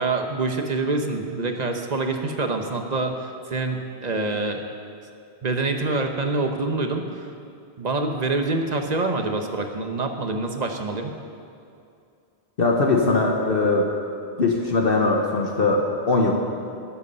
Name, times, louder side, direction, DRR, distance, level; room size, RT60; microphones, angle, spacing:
voice 1, 0.0-4.6 5.4-7.3 7.8-11.1, right 3 dB, 40° right, 4 dB, 1.1 m, -26 dB
voice 2, 12.6-13.9 14.4-16.3, left 3 dB, 60° left, 0 dB, 1.3 m, -20 dB
20.0 x 8.2 x 5.5 m, 2.5 s
omnidirectional pair, 1.1 m